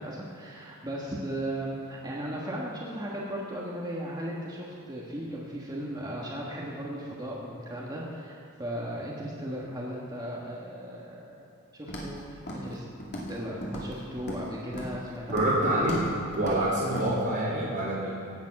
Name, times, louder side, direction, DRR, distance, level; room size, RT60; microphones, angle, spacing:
voice 1, 0.0-11.4 11.7-12.8 13.3-15.7, right 1 dB, 20° right, -4 dB, 1.4 m, -36 dB
Walk footsteps, 11.9-12.2 12.5-12.8 13.0-13.4 13.6-14.5 14.7-15.0 15.3-15.6 15.8-16.1 16.3-16.6 16.9-17.1, equal, 50° left, 2.4 m, -37 dB
voice 2, 15.3-16.0 16.4-18.1, right 1 dB, 50° right, -9 dB, 2.7 m, -26 dB
17.0 x 7.3 x 5.9 m, 2.6 s
head